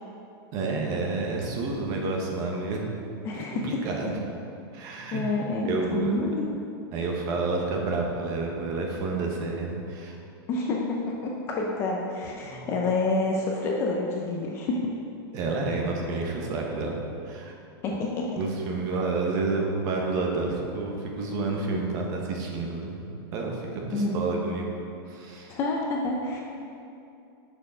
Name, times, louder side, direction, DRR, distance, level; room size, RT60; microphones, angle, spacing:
voice 1, 0.5-2.8 3.3-4.2 4.7-5.2 5.6-6.1 6.9-10.1 12.4-12.7 15.3-17.5 18.4-23.0 23.3-24.7 25.1-25.6, right 3 dB, 25° right, 0 dB, 0.9 m, -29 dB
voice 2, 3.2-3.6 5.1-6.5 10.5-14.9 17.8-18.3 23.9-24.3 25.5-26.4, left 2 dB, 20° left, -1 dB, 0.5 m, -28 dB
6.6 x 6.4 x 4.9 m, 2.7 s
supercardioid pair, 175°, 13 cm